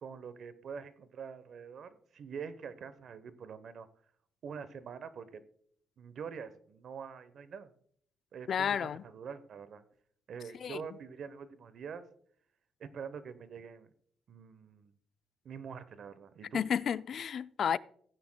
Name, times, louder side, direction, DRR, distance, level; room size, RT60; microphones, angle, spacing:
voice 1, 0.0-3.9 4.4-5.4 6.0-7.7 8.3-9.8 10.3-12.0 12.8-13.9 14.3-14.9 15.4-16.6, right 6 dB, 60° right, 0.8 m, -45 dB
voice 2, 8.5-9.0 10.6-10.8 16.5-17.8, left 8 dB, 60° left, 0.3 m, -31 dB
15.5 x 9.6 x 2.2 m
cardioid pair, 90°, 0 cm